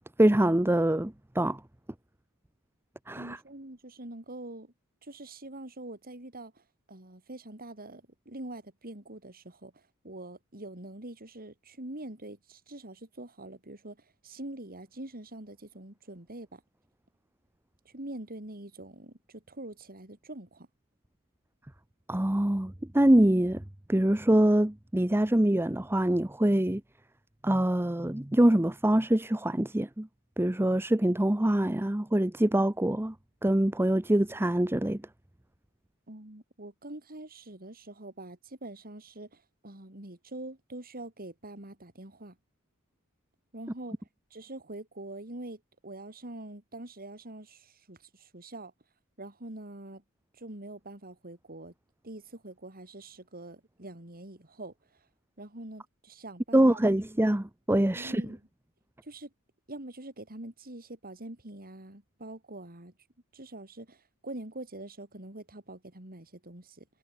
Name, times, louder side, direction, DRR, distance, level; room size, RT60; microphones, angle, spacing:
voice 1, 0.2-1.6 3.1-3.4 22.1-23.6 23.9-26.8 27.4-30.1 30.4-33.1 33.4-35.0 56.5-58.2, right 1 dB, 10° right, 0.8 m, -24 dB
voice 2, 3.2-4.7 5.0-16.6 17.8-20.7 36.1-42.4 43.5-48.7 49.2-50.0 50.3-51.7 52.0-55.0 55.4-56.9 58.0-58.4 59.0-59.3 59.7-62.9 63.3-66.9, right 1 dB, 40° right, 4.1 m, -44 dB
head